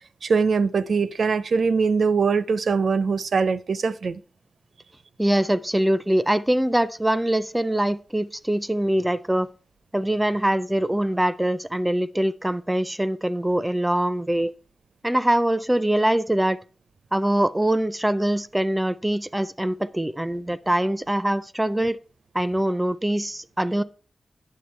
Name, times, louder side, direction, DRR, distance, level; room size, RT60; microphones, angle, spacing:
voice 1, 0.2-4.2, right 5 dB, 70° right, 0.5 m, -22 dB
voice 2, 5.2-9.5 9.9-14.5 15.0-16.6 17.1-22.0 22.3-23.8, right 1 dB, 10° right, 0.4 m, -23 dB
9.5 x 7.5 x 4.3 m
wide cardioid pair, 145°, 0 cm